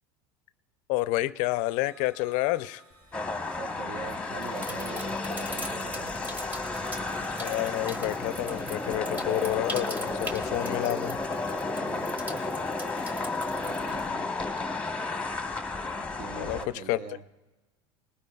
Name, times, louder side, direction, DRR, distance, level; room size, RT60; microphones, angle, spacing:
voice 1, 0.9-2.8 7.4-11.2 16.4-17.0, left 17 dB, 60° left, 17 dB, 0.4 m, -29 dB
sound 1, 1.7-14.2, right 1 dB, 80° right, 3.2 m, -57 dB
Sink (filling or washing), 2.9-3.3 4.0-14.9, equal, 10° right, 1.3 m, -40 dB
sound 2, 3.1-16.6, left 3 dB, 10° left, 1.0 m, -33 dB
voice 2, 3.5-6.1 11.8-12.2 13.6-14.3 16.0-17.2, right 4 dB, 60° right, 9 dB, 1.0 m, -42 dB
21.5 x 19.0 x 2.3 m, 1.1 s
supercardioid pair, 105°, 15 cm